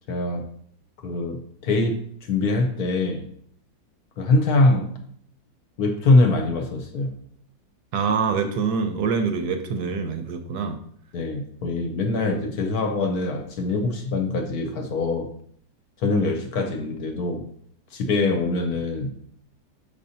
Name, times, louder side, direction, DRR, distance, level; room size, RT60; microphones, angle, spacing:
voice 1, 0.1-0.4 1.0-3.3 4.2-4.9 5.8-7.1 11.1-15.3 16.0-17.4 17.9-19.1, left 2 dB, 65° left, 4 dB, 1.1 m, -23 dB
voice 2, 7.9-10.8, right 5 dB, 70° right, 6 dB, 1.1 m, -25 dB
6.5 x 5.4 x 2.7 m, 0.64 s
omnidirectional pair, 2.0 m